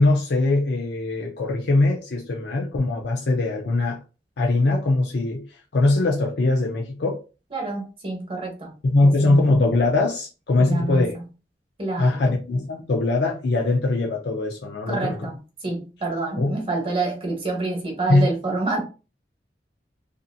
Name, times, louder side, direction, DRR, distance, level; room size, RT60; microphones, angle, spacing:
voice 1, 0.0-4.0 4.4-5.4 5.7-7.2 8.9-11.1 12.0-15.2 16.4-16.5 18.1-18.2, left 2 dB, 65° left, 0.5 m, -21 dB
voice 2, 7.5-8.7 9.0-9.6 10.6-11.2 11.8-12.2 14.9-18.8, right 2 dB, 30° right, 0.9 m, -28 dB
2.5 x 2.5 x 2.6 m
head